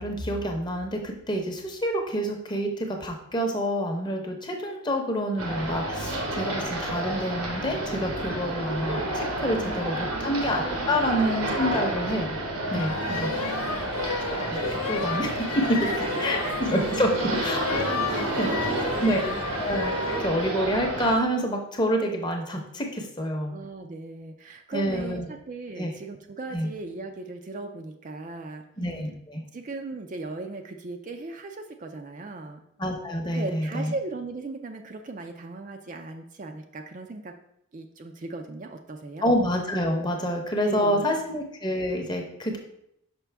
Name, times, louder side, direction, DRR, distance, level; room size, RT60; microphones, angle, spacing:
voice 1, 0.0-12.4 12.7-13.3 14.4-15.9 16.2-17.8 18.4-18.5 19.0-19.2 19.6-23.6 24.7-25.3 25.8-25.9 26.5-26.7 28.8-29.4 32.8-33.9 39.2-42.6, equal, 20° left, 3 dB, 0.7 m, -28 dB
sound 1, 5.4-21.1, right 1 dB, 85° right, 1.2 m, -30 dB
voice 2, 9.5-11.0 12.7-13.9 15.8-16.7 17.0-17.4 17.8-19.4 23.5-28.6 29.5-32.6 33.3-37.3 37.7-39.3 40.6-41.2, right 3 dB, 35° right, 5 dB, 0.4 m, -37 dB
sound 2, 12.8-20.3, left 6 dB, 90° left, 0.5 m, -33 dB
5.9 x 5.1 x 3.4 m, 0.77 s
head